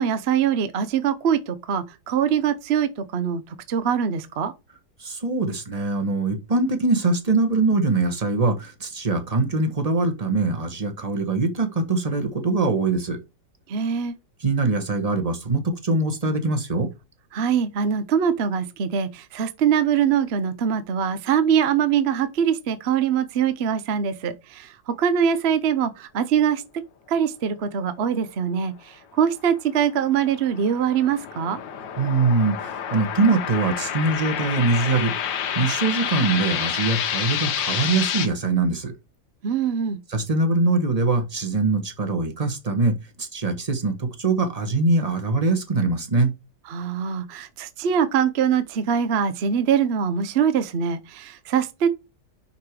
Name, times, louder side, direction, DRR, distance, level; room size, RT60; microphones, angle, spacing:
voice 1, 0.0-3.4 3.7-4.5 13.7-14.1 17.3-26.6 27.1-31.6 39.4-40.0 46.7-51.9, right 8 dB, 50° right, 0.8 m, -23 dB
voice 2, 5.0-13.2 14.4-16.9 32.0-35.1 35.5-38.9 40.1-46.3, right 3 dB, 25° right, 1.2 m, -23 dB
sound 1, 29.9-38.3, left 9 dB, 80° left, 1.7 m, -29 dB
5.9 x 5.8 x 4.7 m
omnidirectional pair, 2.0 m